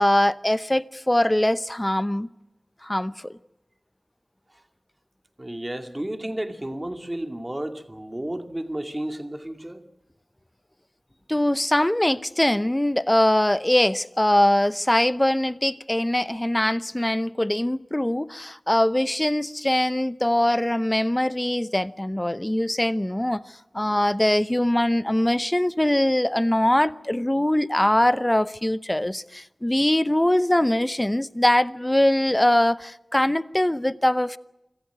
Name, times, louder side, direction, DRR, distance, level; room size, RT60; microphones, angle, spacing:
voice 1, 0.0-2.3 2.8-3.3 11.3-23.4 23.7-34.4, left 1 dB, 20° left, 0.8 m, -22 dB
voice 2, 5.4-9.8, right 1 dB, 25° right, 2.4 m, -32 dB
26.0 x 14.0 x 9.3 m
wide cardioid pair, 50°, 0 cm